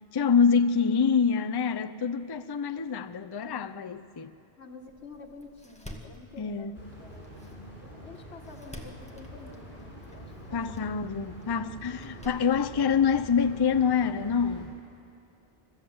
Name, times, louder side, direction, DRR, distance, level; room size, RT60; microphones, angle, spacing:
voice 1, 0.1-4.3 6.4-6.7 10.5-14.8, left 6 dB, 30° left, 0.5 m, -26 dB
voice 2, 4.6-7.5 7.8-10.9, left 3 dB, 85° left, 2.0 m, -49 dB
Door, 4.9-13.9, left 1 dB, 5° left, 1.8 m, -51 dB
sound 1, 6.7-14.7, right 1 dB, 55° left, 6.2 m, -46 dB
29.5 x 14.0 x 8.0 m
omnidirectional pair, 1.1 m